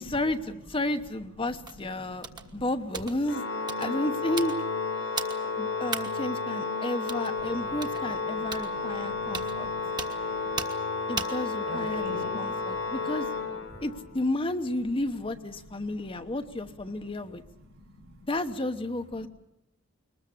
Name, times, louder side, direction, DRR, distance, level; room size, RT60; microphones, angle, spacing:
voice 1, 0.0-2.3 2.5-3.4 3.8-4.6 5.4-9.7 11.1-12.1 12.3-13.3 13.8-17.4 18.3-19.3, left 1 dB, 25° left, 8 dB, 1.0 m, -32 dB
sound 1, 1.7-1.8 2.2-2.5 2.9-3.2 3.7-3.9 4.4-4.6 5.2-5.4 5.9-6.1 7.1-7.3 7.8-8.0 8.5-8.7 9.3-9.5 10.0-10.2 10.6-10.8 11.2-11.4 11.9-12.2, right 4 dB, 20° right, 1.4 m, -35 dB
voice 2, 1.8-2.7 7.7-10.5 11.7-13.0 13.5-13.9 15.7-16.4 16.9-18.2 19.2-19.3, equal, 75° right, 4 dB, 5.7 m, -47 dB
Organ, 3.2-14.1, left 4 dB, 75° left, 2.7 m, -32 dB
22.5 x 20.0 x 8.5 m, 0.82 s
head